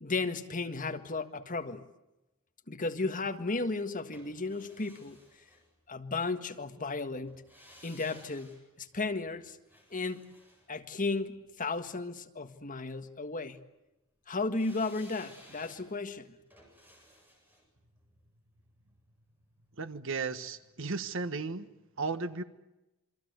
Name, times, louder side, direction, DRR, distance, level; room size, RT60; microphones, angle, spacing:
voice 1, 0.0-1.8 2.7-5.2 5.9-7.4 7.8-9.6 9.9-10.2 10.7-13.6 14.3-16.3, left 3 dB, 40° left, 1.7 m, -34 dB
sound 1, 4.1-6.2 7.3-11.5 14.5-19.5 19.8-19.9, equal, 10° right, 8.0 m, -58 dB
voice 2, 19.8-21.7 22.0-22.4, right 4 dB, 65° right, 1.5 m, -35 dB
27.5 x 25.0 x 8.1 m
head